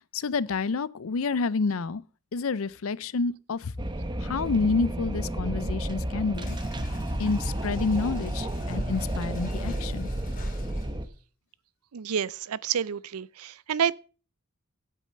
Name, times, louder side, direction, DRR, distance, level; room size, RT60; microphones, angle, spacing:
voice 1, 0.1-2.0 2.3-3.7 4.2-6.6 7.2-10.1, left 4 dB, 70° left, 0.5 m, -28 dB
Wind, 3.8-11.1, right 1 dB, 20° right, 0.9 m, -31 dB
sound 1, 6.3-11.1, left 1 dB, 40° left, 3.2 m, -44 dB
voice 2, 11.9-13.9, right 8 dB, 90° right, 0.5 m, -29 dB
8.5 x 8.4 x 6.7 m
head